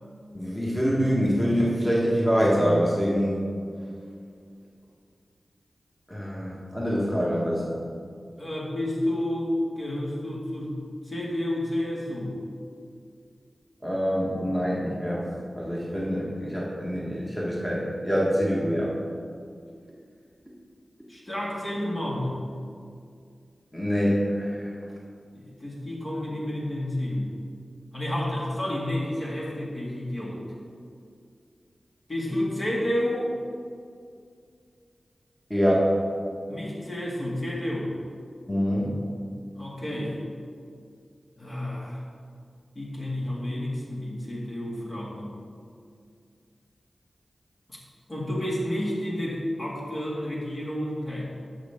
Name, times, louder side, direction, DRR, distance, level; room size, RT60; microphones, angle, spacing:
voice 1, 0.3-3.4 6.1-7.8 13.8-15.3 15.5-18.9 23.7-24.7 35.5-35.9 38.5-38.9, equal, 10° left, -5 dB, 1.6 m, -25 dB
voice 2, 8.4-12.4 21.1-22.4 25.3-27.3 27.9-30.4 32.1-33.4 36.5-37.9 39.6-40.2 41.4-42.0 42.8-45.4 47.7-47.8 48.1-51.4, left 1 dB, 45° left, -4 dB, 2.2 m, -30 dB
11.0 x 6.4 x 3.7 m, 2.3 s
wide cardioid pair, 65°, 0 cm